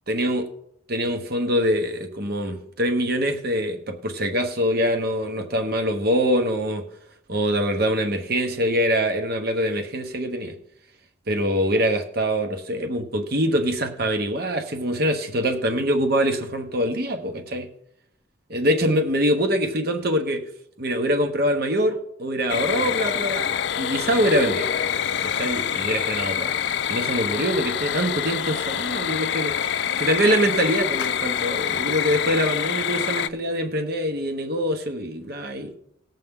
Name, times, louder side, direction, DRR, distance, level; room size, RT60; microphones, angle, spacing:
voice 1, 0.1-0.4 0.9-6.8 7.3-10.6 11.3-17.7 18.5-20.4 20.8-23.4 23.8-24.7 25.2-26.5 26.9-35.7, equal, 55° right, 5 dB, 1.2 m, -24 dB
sound 1, 22.5-33.3, left 9 dB, 60° left, 0.4 m, -26 dB
19.0 x 7.5 x 3.7 m, 0.76 s
head